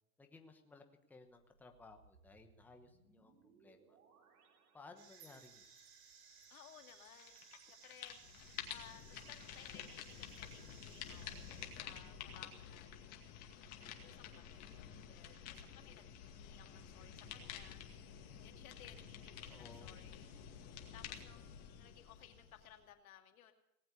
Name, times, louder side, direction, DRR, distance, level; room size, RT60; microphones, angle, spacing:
voice 1, 0.2-4.0 4.7-5.7 19.5-19.9, left 3 dB, 5° left, 4 dB, 1.1 m, -59 dB
sound 1, 1.3-5.7 8.5-10.6 16.3-17.6, right 4 dB, 75° right, 3.6 m, -70 dB
sound 2, 5.0-11.7, right 6 dB, 45° right, 5.4 m, -61 dB
voice 2, 6.5-8.2 8.7-13.2 13.8-17.8 18.4-20.3 20.9-23.5, left 10 dB, 70° left, 6 dB, 2.5 m, -61 dB
sound 3, 7.2-7.6 7.8-22.8, left 8 dB, 35° left, 2.2 m, -51 dB
19.0 x 7.8 x 8.3 m, 0.85 s
hypercardioid pair, 140°, 45 cm